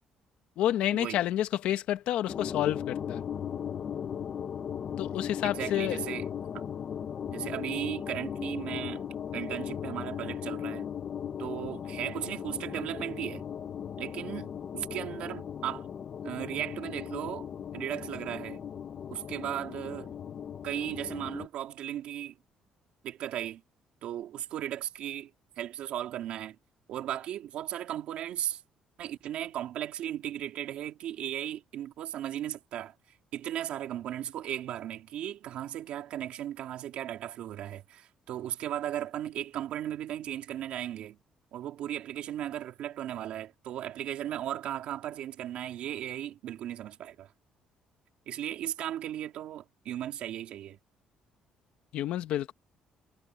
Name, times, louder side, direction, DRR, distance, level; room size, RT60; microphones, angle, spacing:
voice 1, 0.6-3.2 5.0-6.0 51.9-52.5, left 12 dB, 70° left, 1.4 m, -29 dB
sound 1, 2.3-21.5, left 8 dB, 35° left, 0.8 m, -37 dB
voice 2, 5.4-6.3 6.5-6.6 7.3-9.1 9.3-10.9 11.4-13.5 14.0-15.9 16.2-17.5 17.7-18.6 19.1-20.1 20.6-22.4 23.0-23.6 24.0-25.3 25.6-26.6 26.9-28.6 29.0-32.9 33.3-41.2 41.5-47.3 48.3-50.8, right 11 dB, 60° right, 2.9 m, -36 dB
cardioid pair, 175°, 2 cm